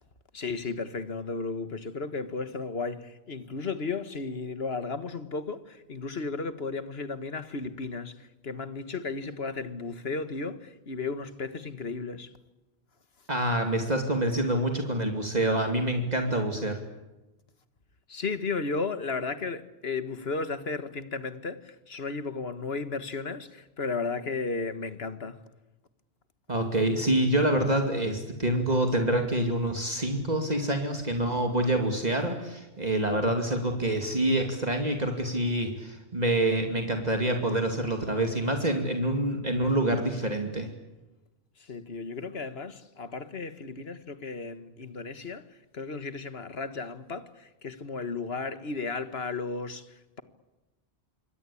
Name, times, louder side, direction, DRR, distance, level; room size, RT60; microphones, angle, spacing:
voice 1, 0.3-12.3 18.1-25.4 41.6-45.4 45.7-50.2, left 4 dB, 70° left, 1.8 m, -34 dB
voice 2, 13.3-16.8 26.5-40.7, right 1 dB, 40° right, 2.6 m, -26 dB
27.0 x 23.0 x 8.6 m
omnidirectional pair, 1.1 m